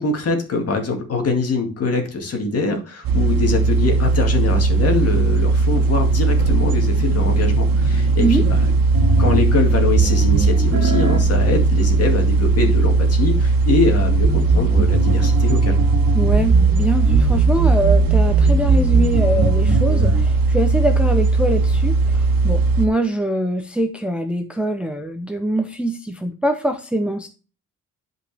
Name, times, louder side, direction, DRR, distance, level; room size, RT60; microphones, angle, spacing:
voice 1, 0.0-8.6 9.2-15.8, left 3 dB, 45° left, 3 dB, 2.1 m, -23 dB
sound 1, 3.0-22.9, right 3 dB, 90° right, 1.4 m, -18 dB
sound 2, 8.9-20.2, right 3 dB, 55° right, 2.1 m, -22 dB
voice 2, 16.1-27.3, right 1 dB, 5° right, 5 dB, 0.6 m, -23 dB
11.5 x 5.1 x 3.4 m, 0.33 s
wide cardioid pair, 175°, 33 cm